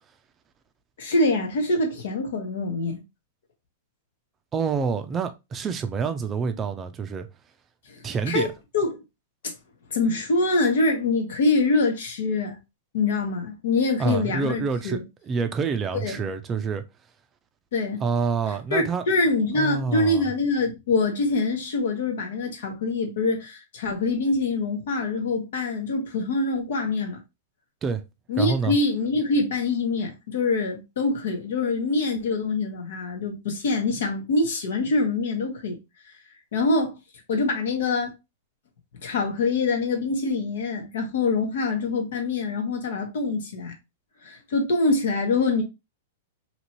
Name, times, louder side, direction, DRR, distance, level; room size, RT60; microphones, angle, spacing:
voice 1, 1.0-3.0 7.9-8.0 8.2-8.5 8.7-8.9 9.4-9.5 9.9-12.6 12.9-15.0 16.0-16.2 17.7-18.0 18.7-27.2 28.3-35.8 36.5-37.0 37.3-38.1 39.0-43.7 44.2-45.6, left 3 dB, 70° left, 1.1 m, -24 dB
voice 2, 4.5-7.3 8.0-8.5 14.0-15.0 15.3-16.8 18.0-19.0 19.5-20.3 27.8-28.0 28.4-28.8, right 5 dB, 25° right, 0.4 m, -27 dB
2.9 x 2.6 x 3.0 m
hypercardioid pair, 130°, 0 cm